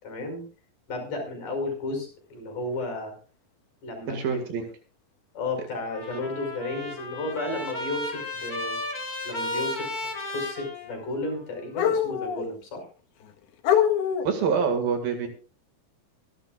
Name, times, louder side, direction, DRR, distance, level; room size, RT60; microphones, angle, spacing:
voice 1, 0.0-0.4 0.9-3.2 3.8-4.4 5.3-8.8 9.3-10.0 10.3-12.9, left 2 dB, 55° left, 5 dB, 7.0 m, -33 dB
voice 2, 4.1-4.7 14.2-15.3, right 6 dB, 75° right, 6 dB, 3.7 m, -26 dB
sound 1, 4.7-4.8 6.2-6.3 7.3-7.5 10.0-10.1 11.7-12.5 13.2-13.3 13.6-14.5, left 9 dB, 90° left, 3.4 m, -24 dB
Trumpet, 5.8-11.4, left 2 dB, 25° left, 3.1 m, -34 dB
24.5 x 11.5 x 2.5 m, 0.35 s
omnidirectional pair, 4.3 m